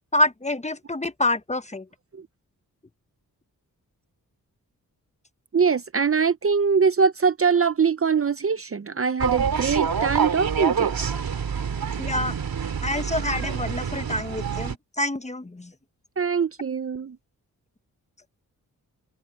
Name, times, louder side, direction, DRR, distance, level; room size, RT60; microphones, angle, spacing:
voice 1, 0.1-1.8 12.0-12.3 12.8-15.7, left 2 dB, 20° left, 1.1 m, -27 dB
voice 2, 5.5-11.0 16.2-17.2, right 6 dB, 40° right, 0.7 m, -22 dB
sound 1, 9.2-14.7, right 6 dB, 75° right, 2.4 m, -27 dB
cardioid pair, 65°, 36 cm